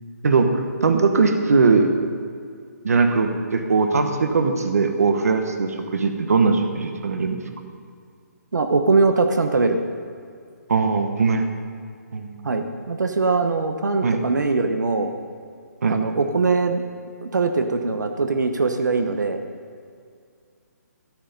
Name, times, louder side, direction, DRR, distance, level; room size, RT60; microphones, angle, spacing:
voice 1, 0.2-1.9 2.8-7.4 10.7-11.4 12.1-12.4 14.0-14.2 15.8-16.0, right 4 dB, 60° right, 6 dB, 1.3 m, -20 dB
voice 2, 8.5-9.8 12.4-15.1 15.8-16.8 17.2-19.4, right 3 dB, 90° right, 6 dB, 1.1 m, -21 dB
14.0 x 10.5 x 5.3 m, 2.3 s
hypercardioid pair, 180°, 9 cm